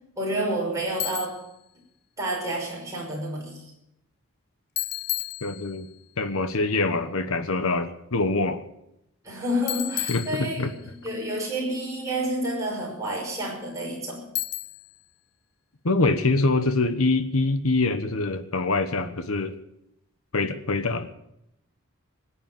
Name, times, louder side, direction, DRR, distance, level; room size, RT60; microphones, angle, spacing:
voice 1, 0.2-1.4 2.2-3.7 9.2-10.7 11.0-14.3, right 1 dB, 15° right, -3 dB, 5.8 m, -29 dB
Bicycle, 1.0-1.5 4.8-6.0 9.7-10.9 14.4-15.0, left 14 dB, 50° left, 0.8 m, -32 dB
voice 2, 5.4-5.9 6.2-8.6 10.1-10.7 15.8-19.5 20.3-21.1, left 3 dB, 75° left, 9 dB, 1.2 m, -24 dB
20.5 x 8.7 x 7.1 m, 0.82 s
head